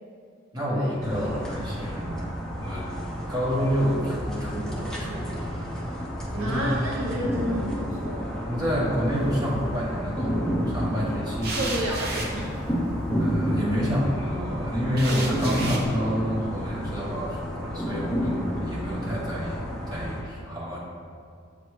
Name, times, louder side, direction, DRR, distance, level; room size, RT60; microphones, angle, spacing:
voice 1, 0.5-2.3 2.6-2.9 3.3-6.0 6.3-6.6 8.5-11.6 13.2-20.8, equal, 20° right, -6 dB, 1.3 m, -29 dB
sound 1, 1.0-20.2, equal, 5° left, 0.7 m, -31 dB
voice 2, 6.4-8.5 11.4-12.6, right 1 dB, 85° right, -3 dB, 0.7 m, -31 dB
sound 2, 9.1-9.7 11.4-13.4 15.0-15.9, right 2 dB, 50° right, 0.8 m, -34 dB
7.1 x 3.1 x 4.7 m, 2.3 s
head